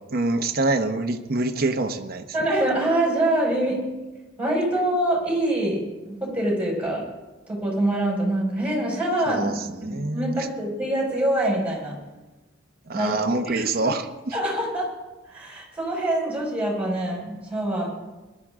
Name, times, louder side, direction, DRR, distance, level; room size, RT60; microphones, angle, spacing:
voice 1, 0.1-2.2 9.3-10.5 12.9-14.4, right 2 dB, 50° right, 4 dB, 0.9 m, -26 dB
voice 2, 2.3-3.8 4.4-5.8 6.1-7.0 7.5-9.5 9.8-11.9 12.9-13.1 13.5-13.9 14.3-14.9 15.3-17.9, right 1 dB, 5° right, -3 dB, 5.2 m, -25 dB
21.0 x 12.0 x 3.7 m, 1.1 s
head